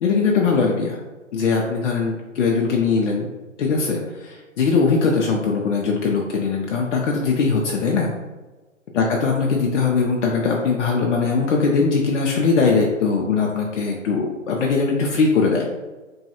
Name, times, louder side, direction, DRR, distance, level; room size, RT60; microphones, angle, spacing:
voice 1, 0.0-1.0 1.3-3.3 3.6-8.1 8.9-15.7, left 4 dB, 60° left, -1 dB, 0.5 m, -20 dB
3.1 x 2.2 x 2.9 m, 1.2 s
hypercardioid pair, 130°, 40 cm